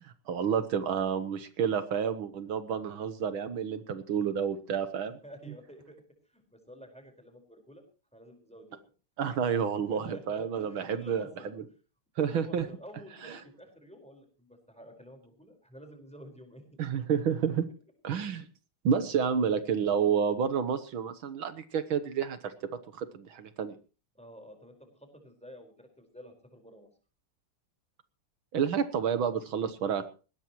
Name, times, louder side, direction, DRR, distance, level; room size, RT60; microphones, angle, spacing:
voice 1, 0.0-5.2 9.2-11.3 12.2-12.6 13.2-13.4 16.8-17.6 18.0-18.5 18.8-22.5 22.9-23.8 28.5-30.0, right 7 dB, 75° right, 11 dB, 1.9 m, -29 dB
voice 2, 5.2-6.0 6.3-7.8 8.1-8.8 9.9-11.5 12.2-16.6 24.1-26.9, equal, 5° left, 4 dB, 4.7 m, -50 dB
20.0 x 16.0 x 3.1 m, 0.36 s
omnidirectional pair, 2.3 m